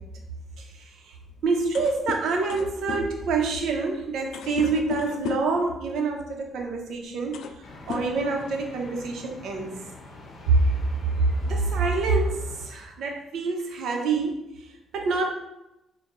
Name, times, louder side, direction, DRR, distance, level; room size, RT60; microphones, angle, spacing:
sound 1, 1.3-1.4 1.6-5.6 6.6-6.8 7.1-7.6 7.9-8.8, left 6 dB, 75° left, 0.3 m, -35 dB
voice 1, 1.4-7.4 7.9-9.8 10.5-10.6 11.4-12.4 12.7-14.4 14.9-15.3, right 4 dB, 75° right, 2 dB, 0.7 m, -26 dB
sound 2, 7.6-12.7, left 2 dB, 55° left, 0.7 m, -45 dB
6.4 x 2.3 x 3.0 m, 0.91 s
cardioid pair, 90°, 0 cm